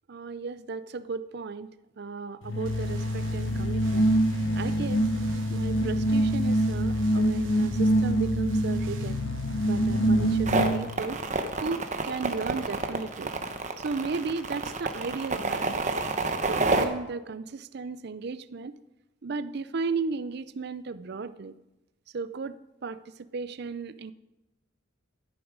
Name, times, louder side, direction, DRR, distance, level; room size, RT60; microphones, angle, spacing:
voice 1, 0.1-1.7 2.0-4.1 4.5-5.1 5.5-9.2 9.6-11.2 11.6-13.3 13.8-15.9 16.5-18.8 19.2-21.5 22.1-23.0 23.3-24.1, right 4 dB, 55° right, 14 dB, 0.5 m, -35 dB
sound 1, 2.4-11.0, equal, 70° left, 0.8 m, -25 dB
sound 2, 2.7-10.5, right 2 dB, 75° right, 1.1 m, -41 dB
sound 3, 10.5-16.8, right 3 dB, 35° right, 1.0 m, -28 dB
13.5 x 7.9 x 5.1 m, 0.96 s
head